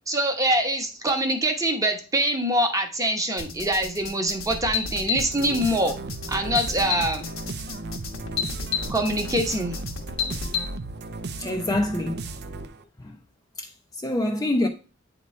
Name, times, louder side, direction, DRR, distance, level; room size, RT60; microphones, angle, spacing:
voice 1, 0.1-5.9 6.3-7.3 8.9-9.8, right 1 dB, 15° right, 0.9 m, -24 dB
sound 1, 3.4-10.6, left 6 dB, 75° left, 1.2 m, -31 dB
sound 2, 5.1-12.8, right 3 dB, 55° right, 0.5 m, -35 dB
voice 2, 11.4-12.3 13.0-13.2 13.6-14.7, left 1 dB, 15° left, 0.5 m, -26 dB
8.5 x 3.0 x 4.2 m
head